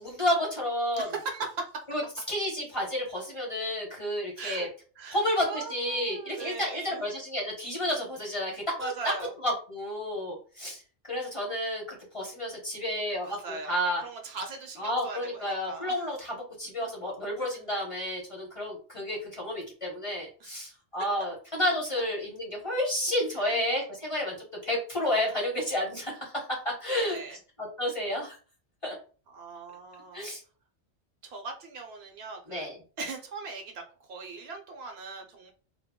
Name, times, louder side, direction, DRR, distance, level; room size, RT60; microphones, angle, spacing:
voice 1, 0.0-1.1 1.9-2.0 2.3-4.7 5.1-9.1 9.4-14.0 14.8-24.4 24.6-26.3 26.8-27.2 27.8-28.4 28.8-28.9 30.1-30.4 32.5-32.8, left 1 dB, 30° left, -2 dB, 0.8 m, -31 dB
voice 2, 0.9-1.8 4.4-4.7 5.0-7.0 8.8-9.3 13.2-15.9 17.4-17.5 23.4-23.6 26.9-27.4 29.3-30.3 31.2-32.7 33.0-33.8 34.1-35.5, right 3 dB, 70° right, 3 dB, 0.8 m, -39 dB
2.2 x 2.1 x 3.5 m, 0.38 s
omnidirectional pair, 1.2 m